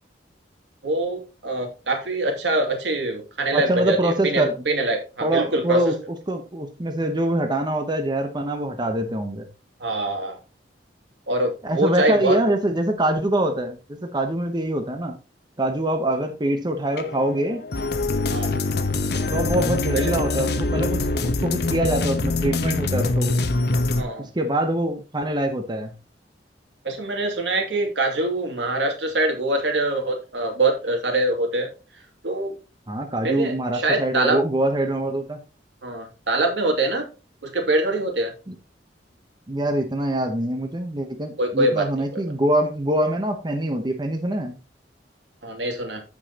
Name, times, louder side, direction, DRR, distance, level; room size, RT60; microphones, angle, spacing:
voice 1, 0.8-5.9 9.8-10.4 11.3-12.4 18.3-18.5 19.9-20.1 24.0-24.3 26.8-31.7 32.2-32.5 33.2-34.4 35.8-37.1 37.4-38.3 41.4-41.9 45.4-46.0, right 2 dB, 80° right, 3 dB, 2.6 m, -24 dB
voice 2, 3.5-4.5 5.2-9.5 11.6-15.2 15.6-17.6 19.3-23.4 24.2-25.9 32.9-35.4 38.5-38.6 39.5-44.6, right 1 dB, 25° right, 5 dB, 0.9 m, -24 dB
sound 1, 16.9-24.0, left 2 dB, 65° left, 0.9 m, -24 dB
14.5 x 5.1 x 2.9 m, 0.31 s
head